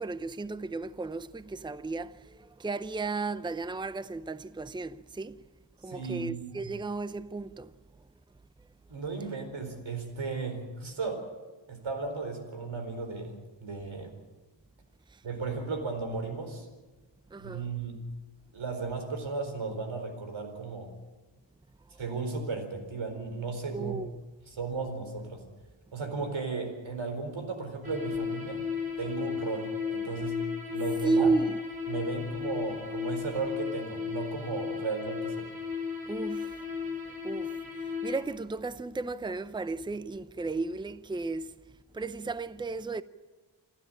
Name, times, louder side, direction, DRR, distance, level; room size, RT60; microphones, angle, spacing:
voice 1, 0.0-5.4 5.8-7.7 15.1-15.2 17.3-17.7 23.7-24.1 31.0-31.6 36.1-36.7 37.2-41.6 41.9-43.0, right 3 dB, 10° right, 0.6 m, -33 dB
voice 2, 5.9-6.3 8.9-11.2 11.7-14.1 15.2-16.7 17.4-18.0 18.5-20.9 22.0-24.0 24.5-25.4 25.9-28.6 29.0-30.4 30.7-31.3 31.9-35.5, right 4 dB, 90° right, 4.5 m, -35 dB
sound 1, 27.8-38.2, left 6 dB, 50° right, 6.6 m, -35 dB
28.5 x 12.5 x 8.7 m
wide cardioid pair, 95°, 46 cm